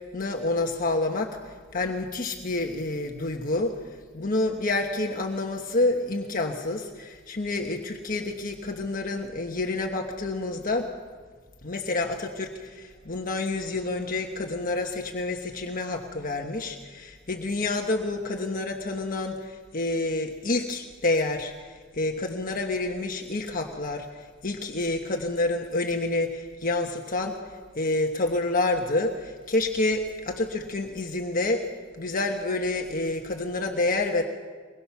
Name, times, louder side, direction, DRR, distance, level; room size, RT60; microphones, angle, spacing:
voice 1, 0.1-3.7 4.1-10.9 11.6-27.4 27.7-31.6 32.0-34.2, left 2 dB, 45° left, 3 dB, 1.3 m, -28 dB
23.5 x 21.5 x 5.9 m, 1.5 s
head